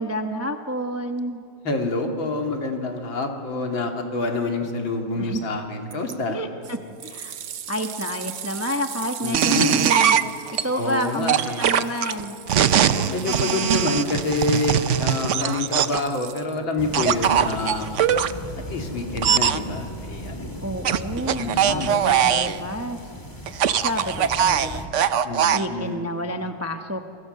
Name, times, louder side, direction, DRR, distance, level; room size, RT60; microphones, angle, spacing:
voice 1, 0.0-1.4 5.2-5.4 6.3-7.3 7.7-10.2 10.6-12.4 16.9-17.2 20.6-23.0 23.8-24.9 25.5-27.0, equal, 20° right, 6 dB, 0.4 m, -29 dB
voice 2, 1.6-6.4 9.2-9.8 10.8-11.6 12.7-18.0 18.6-20.6 21.3-21.9 25.2-26.0, left 3 dB, 70° left, 3 dB, 3.2 m, -27 dB
Hose Water, 5.9-6.2 6.6-16.8 17.6-17.7, right 9 dB, 60° right, 1.5 m, -39 dB
sound 1, 9.3-10.6 11.3-16.1 16.9-18.3 19.2-19.6 20.9-22.6 23.5-25.7, right 9 dB, 85° right, 0.6 m, -21 dB
sound 2, 16.8-24.9, equal, 10° left, 2.2 m, -36 dB
28.0 x 24.0 x 6.7 m, 2.4 s
omnidirectional pair, 2.2 m